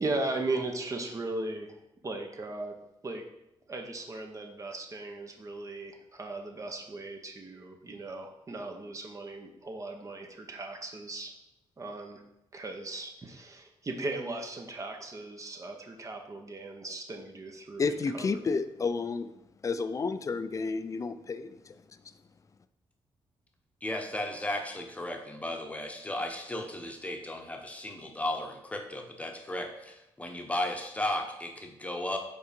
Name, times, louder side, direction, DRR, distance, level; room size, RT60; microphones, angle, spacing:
voice 1, 0.0-1.8 2.0-2.8 3.0-3.2 3.7-11.3 11.8-12.2 12.5-18.3, right 2 dB, 35° right, 0.9 m, -37 dB
voice 2, 17.8-19.3 19.6-21.8, left 4 dB, 35° left, 0.4 m, -31 dB
voice 3, 23.8-32.2, left 1 dB, 15° left, 1.0 m, -35 dB
5.3 x 4.1 x 5.2 m
cardioid pair, 95°, 10 cm